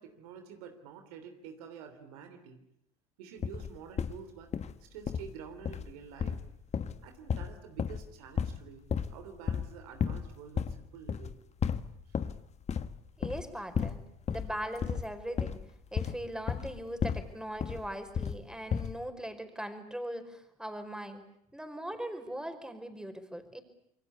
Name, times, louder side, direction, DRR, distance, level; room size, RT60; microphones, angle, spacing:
voice 1, 0.0-2.6 3.2-4.5 4.8-6.4 7.0-11.4 12.1-12.2, right 7 dB, 80° right, 7 dB, 3.1 m, -48 dB
sound 1, 3.4-4.2 4.5-4.7 5.1-5.3 5.6-5.9 6.2-8.1 8.4-8.6 8.9-9.2 9.5-9.7 10.0-10.3 10.6-10.8 11.1-11.3 11.6-12.4 12.7-13.0 13.2-13.5 13.7-14.0 14.3-17.3 17.6-18.4 18.7-19.0, left 7 dB, 35° left, 1.5 m, -33 dB
voice 2, 13.2-15.6 15.9-21.3 21.5-23.6, equal, 5° right, 7 dB, 4.9 m, -40 dB
27.5 x 23.0 x 8.3 m, 0.72 s
hypercardioid pair, 75°, 19 cm